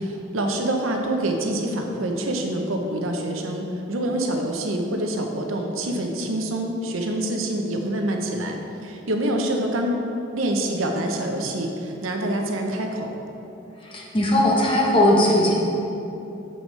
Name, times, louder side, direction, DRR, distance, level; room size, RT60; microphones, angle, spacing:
voice 1, 0.0-3.6 3.9-9.9 10.3-13.1, right 1 dB, 85° right, 2 dB, 0.7 m, -26 dB
voice 2, 13.8-15.5, left 1 dB, 25° left, -3 dB, 0.9 m, -19 dB
6.9 x 6.1 x 3.2 m, 3.0 s
head